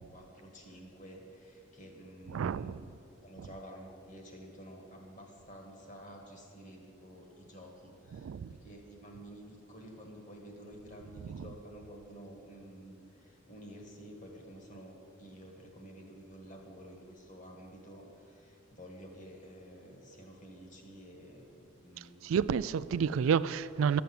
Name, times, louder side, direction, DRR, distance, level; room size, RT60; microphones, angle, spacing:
voice 1, 0.0-2.9 3.2-22.4, equal, 40° left, 1.7 m, -51 dB
voice 2, 2.3-2.8 8.1-8.5 22.2-24.0, right 7 dB, 85° right, 0.3 m, -30 dB
13.0 x 7.0 x 7.8 m
head